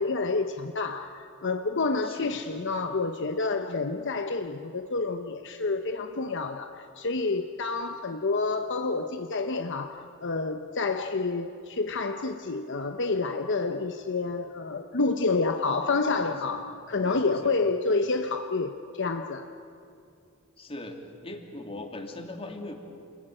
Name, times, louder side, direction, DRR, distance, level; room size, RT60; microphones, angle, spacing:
voice 1, 0.0-19.5, left 3 dB, 60° left, 6 dB, 1.0 m, -29 dB
voice 2, 2.0-2.4 16.1-16.6 17.0-17.5 20.6-21.0 21.2-22.7, left 1 dB, 30° left, 3 dB, 2.7 m, -40 dB
29.0 x 21.0 x 9.0 m, 2.5 s
head